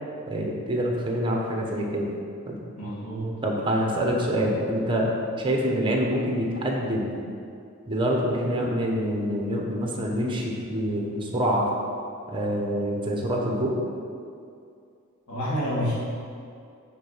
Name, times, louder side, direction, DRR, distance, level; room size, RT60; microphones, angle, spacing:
voice 1, 0.3-2.1 2.5-2.6 3.4-7.2 7.9-11.7 12.3-13.8, equal, 25° right, -1 dB, 1.1 m, -26 dB
voice 2, 2.8-3.4 15.3-15.9, equal, 80° left, -7 dB, 2.0 m, -28 dB
9.0 x 4.3 x 5.6 m, 2.4 s
head